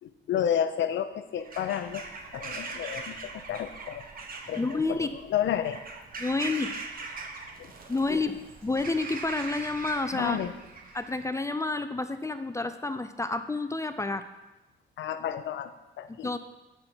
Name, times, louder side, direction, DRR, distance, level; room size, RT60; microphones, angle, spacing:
voice 1, 0.0-2.0 2.3-4.1 4.5-5.8 7.6-7.7 8.1-8.2 10.1-10.5 15.0-15.7 16.0-16.3, left 9 dB, 70° left, 10 dB, 0.7 m, -31 dB
Bird vocalization bird call bird song / Crow, 1.4-11.3, right 3 dB, 45° right, 1.2 m, -41 dB
voice 2, 4.6-5.1 6.2-6.7 7.9-10.4 10.9-14.2 16.2-16.4, left 3 dB, 15° left, 10 dB, 0.5 m, -29 dB
13.0 x 4.4 x 4.4 m, 1.0 s
cardioid pair, 90°, 20 cm